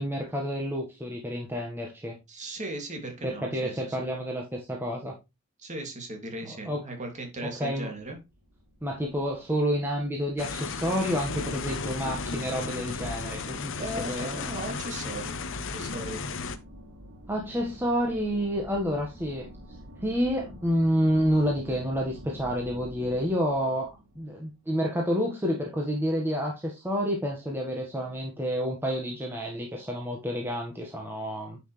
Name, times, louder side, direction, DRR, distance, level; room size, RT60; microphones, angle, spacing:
voice 1, 0.0-2.2 3.2-5.1 6.6-6.8 7.6-7.9 8.8-14.6 17.3-19.5 20.0-23.9 24.1-31.6, equal, 10° right, 0 dB, 1.5 m, -29 dB
voice 2, 2.3-4.1 5.6-8.2 13.8-15.4 15.7-16.2, right 1 dB, 35° right, 3 dB, 2.7 m, -37 dB
sound 1, 7.9-25.0, equal, 70° right, 3.1 m, -49 dB
sound 2, 10.4-16.6, left 4 dB, 60° left, 0.9 m, -34 dB
9.9 x 5.9 x 3.3 m, 0.24 s
head